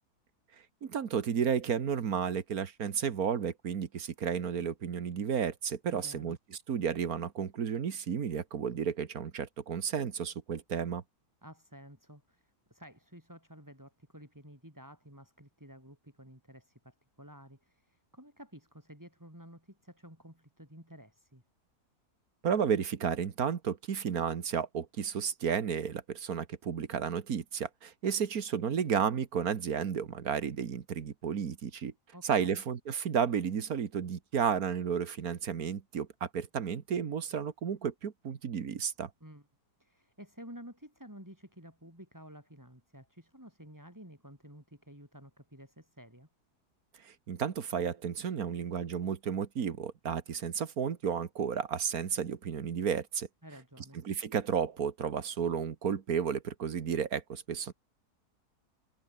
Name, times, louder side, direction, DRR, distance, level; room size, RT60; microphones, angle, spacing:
voice 1, 0.8-6.4 6.7-11.0 22.4-31.9 32.2-39.1 47.0-53.3 54.1-57.7, right 7 dB, 60° right, 1.8 m, -32 dB
voice 2, 5.9-6.4 11.4-21.4 32.1-32.6 39.2-39.4 39.8-46.3 53.4-54.0, equal, 10° right, 6.9 m, -52 dB
omnidirectional pair, 1.8 m